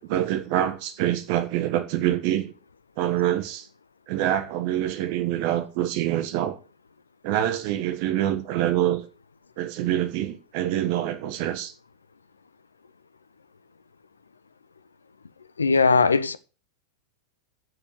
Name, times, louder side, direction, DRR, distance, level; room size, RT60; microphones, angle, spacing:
voice 1, 0.0-2.5 3.0-3.7 4.1-6.6 7.2-9.0 9.6-11.7, right 12 dB, 45° right, 1.4 m, -25 dB
voice 2, 15.6-16.4, left 4 dB, 75° left, 0.7 m, -19 dB
8.1 x 7.0 x 7.8 m
figure-of-eight pair, 90°, 0 cm